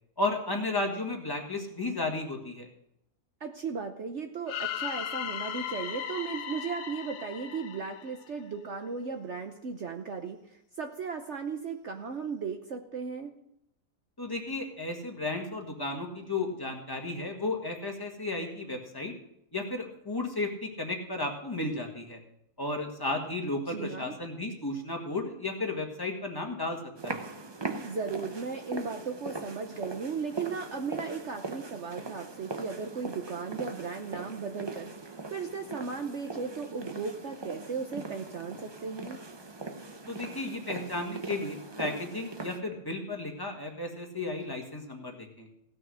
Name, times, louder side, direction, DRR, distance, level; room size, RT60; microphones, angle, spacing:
voice 1, 0.2-2.7 14.2-19.1 19.5-22.2 22.6-27.2 40.1-45.5, left 2 dB, 15° left, 2 dB, 1.7 m, -34 dB
voice 2, 3.4-13.3 23.7-24.1 27.8-34.9 35.3-39.2, right 5 dB, 55° right, 5 dB, 1.0 m, -36 dB
sound 1, 4.5-8.5, left 9 dB, 75° left, 1.3 m, -37 dB
sound 2, 27.0-42.6, right 3 dB, 25° right, 0.5 m, -40 dB
16.0 x 6.2 x 6.3 m, 0.77 s
omnidirectional pair, 1.7 m